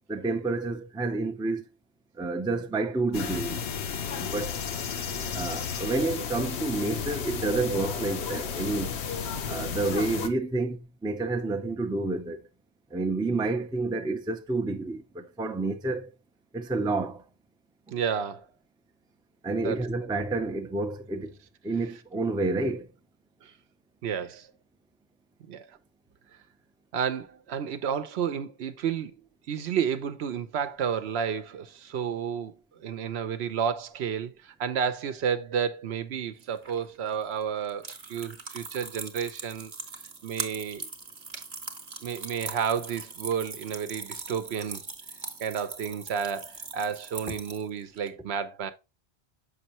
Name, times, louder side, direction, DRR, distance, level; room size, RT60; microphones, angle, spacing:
voice 1, 0.1-1.6 2.2-3.6 4.2-4.6 5.3-8.9 9.5-12.4 12.9-16.1 16.5-17.2 19.4-21.3 21.6-22.9, right 3 dB, 5° right, 0.3 m, -29 dB
sound 1, 3.1-10.3, left 6 dB, 85° left, 1.0 m, -33 dB
voice 2, 17.9-18.5 19.6-19.8 23.4-23.5 24.0-24.5 25.5-25.6 26.9-29.1 29.5-39.7 40.2-40.9 42.0-44.8 45.4-48.7, right 7 dB, 85° right, 0.9 m, -31 dB
sound 2, 36.4-48.1, right 4 dB, 40° right, 0.9 m, -41 dB
6.6 x 5.4 x 3.0 m
omnidirectional pair, 1.1 m